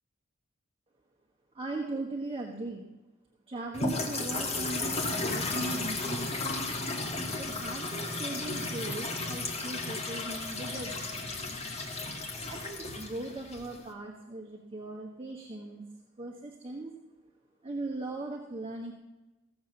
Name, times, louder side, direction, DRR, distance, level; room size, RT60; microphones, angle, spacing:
voice 1, 1.5-2.9 3.5-6.5 7.4-11.4 12.5-15.8 16.2-16.9 17.6-18.9, right 2 dB, 30° right, 0 dB, 1.3 m, -39 dB
sound 1, 3.7-13.9, left 2 dB, 35° left, 1.7 m, -34 dB
16.0 x 7.3 x 6.7 m, 1.1 s
head